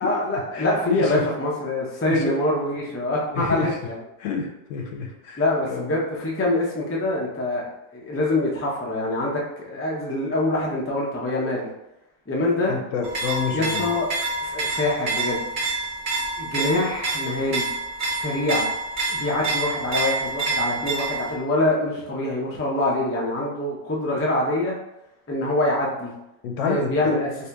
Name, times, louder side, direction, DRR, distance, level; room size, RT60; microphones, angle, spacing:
voice 1, 0.0-4.0 5.4-7.7 7.9-11.7 12.3-12.8 13.5-14.1 14.4-15.5 16.4-17.7 18.2-18.7 19.1-24.7 25.3-26.1 26.6-27.3, left 1 dB, 20° left, -3 dB, 0.3 m, -25 dB
voice 2, 0.5-1.2 2.1-2.4 3.3-3.7 4.2-5.4 5.7-5.8 12.7-13.9 26.4-27.1, left 5 dB, 85° left, 2 dB, 0.9 m, -28 dB
sound 1, 13.0-21.3, right 2 dB, 55° right, 0.6 m, -27 dB
2.9 x 2.7 x 3.4 m, 0.88 s
omnidirectional pair, 1.3 m